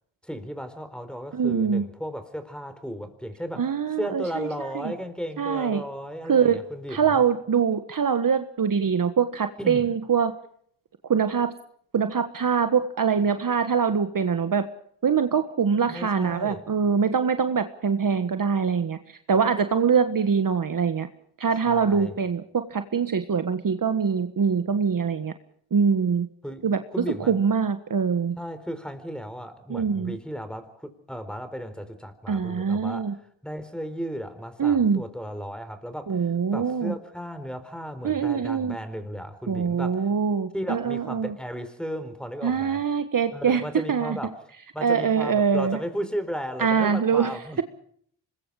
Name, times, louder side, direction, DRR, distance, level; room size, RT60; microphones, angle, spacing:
voice 1, 0.2-3.7 4.0-7.2 9.6-9.8 15.9-16.6 21.7-22.2 26.4-26.6 26.9-27.4 28.4-33.1 33.4-36.2 36.5-40.1 40.5-42.8 43.3-44.4 44.7-47.6, equal, ahead, 10 dB, 4.4 m, -35 dB
voice 2, 1.3-1.8 3.6-4.9 5.4-5.8 6.3-6.6 6.9-10.4 11.1-11.5 11.9-14.7 15.0-21.1 21.4-25.3 25.7-26.3 26.6-28.3 29.7-30.2 32.3-33.1 34.6-35.0 36.1-36.9 38.0-38.8 39.5-41.3 42.4-43.6 43.9-44.2 44.8-45.8 46.6-47.4, right 6 dB, 45° right, 9 dB, 1.5 m, -24 dB
26.0 x 21.0 x 4.9 m, 0.64 s
supercardioid pair, 50°, 45 cm